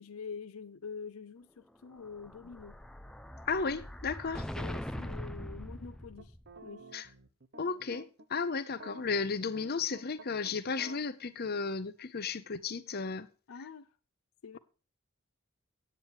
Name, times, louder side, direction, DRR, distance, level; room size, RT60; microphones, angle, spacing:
voice 1, 0.0-2.8 4.6-6.3 6.6-6.9 13.5-13.9 14.4-14.6, left 5 dB, 85° left, 0.5 m, -45 dB
Explosion, 1.9-6.6, equal, 5° left, 0.5 m, -42 dB
voice 2, 3.5-4.4 6.9-7.1 7.6-13.3, left 4 dB, 50° left, 0.8 m, -34 dB
sound 1, 6.2-8.3 8.7-11.0, right 2 dB, 55° right, 1.0 m, -52 dB
9.1 x 8.9 x 4.7 m
head